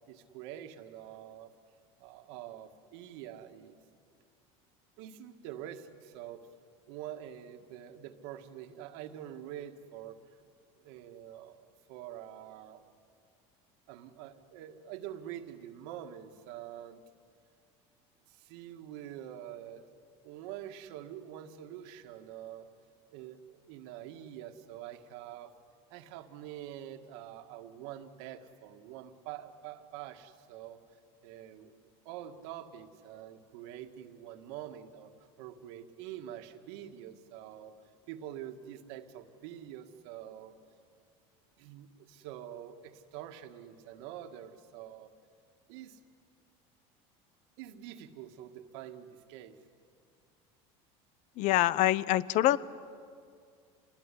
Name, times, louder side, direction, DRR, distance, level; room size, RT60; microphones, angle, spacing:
voice 1, 0.1-1.5 2.0-3.8 5.0-6.5 6.9-10.2 10.8-12.8 13.9-17.0 18.3-19.8 20.2-22.7 23.1-25.5 25.9-30.8 31.2-31.7 32.1-35.1 35.4-37.7 38.1-40.6 41.6-45.1 45.7-46.0 47.6-49.6, right 11 dB, 75° right, 7 dB, 1.8 m, -46 dB
voice 2, 51.4-52.6, left 14 dB, 60° left, 19 dB, 0.8 m, -25 dB
27.0 x 21.0 x 10.0 m, 2.3 s
supercardioid pair, 115°, 14 cm